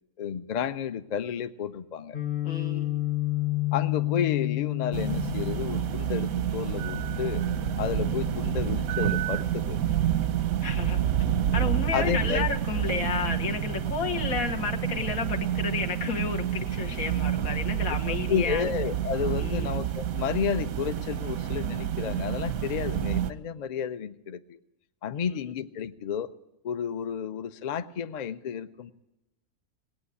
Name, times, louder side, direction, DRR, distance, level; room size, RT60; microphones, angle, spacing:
voice 1, 0.2-2.2 3.7-7.5 7.8-9.8 11.9-12.4 18.1-24.6 25.0-26.3 26.6-28.9, left 8 dB, 55° left, 12 dB, 0.4 m, -31 dB
Guitar, 2.1-10.0, left 18 dB, 40° left, 1.0 m, -32 dB
voice 2, 2.4-3.0 10.6-11.1 11.5-18.6 19.4-19.7 25.1-25.5, left 5 dB, 90° left, 3 dB, 1.8 m, -32 dB
sound 1, 4.9-23.3, right 10 dB, 90° right, 1.2 m, -29 dB
18.0 x 8.8 x 8.3 m, 0.95 s
omnidirectional pair, 1.4 m